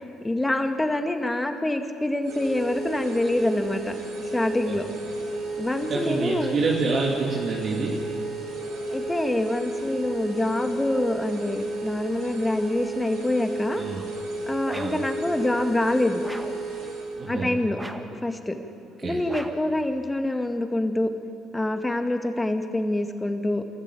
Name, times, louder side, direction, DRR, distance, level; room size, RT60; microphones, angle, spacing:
voice 1, 0.2-4.9 5.6-6.6 8.9-13.8 14.5-16.2 17.3-17.8 18.1-18.6 19.0-21.1 21.5-23.6, left 1 dB, 15° left, 6 dB, 2.1 m, -26 dB
sound 1, 2.2-17.1, right 2 dB, 75° right, 7.1 m, -33 dB
voice 2, 5.8-8.0 13.8-14.0 14.7-15.0 17.2-17.6 19.0-19.2, right 4 dB, 45° right, -2 dB, 2.6 m, -27 dB
sound 2, 14.6-15.1 16.2-16.7 17.7-18.2 19.3-19.7, right 1 dB, 5° right, 1.8 m, -39 dB
27.5 x 14.0 x 8.5 m, 2.4 s
hypercardioid pair, 50°, 0 cm